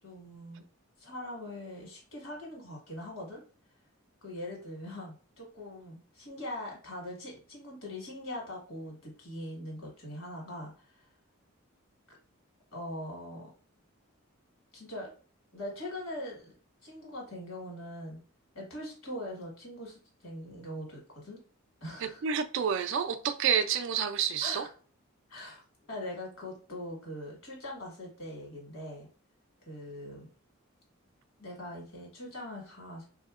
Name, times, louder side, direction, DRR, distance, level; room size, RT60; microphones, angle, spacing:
voice 1, 0.0-0.6 1.0-3.4 4.2-11.1 12.1-12.2 12.7-13.5 14.7-15.1 15.5-16.5 16.8-18.2 18.5-21.4 21.8-22.2 24.4-24.7 25.3-25.6 25.9-29.1 29.6-30.3 31.4-33.1, left 1 dB, 65° left, 1.6 m, -42 dB
voice 2, 22.0-24.7, right 7 dB, 60° right, 0.3 m, -29 dB
3.4 x 2.7 x 2.4 m
head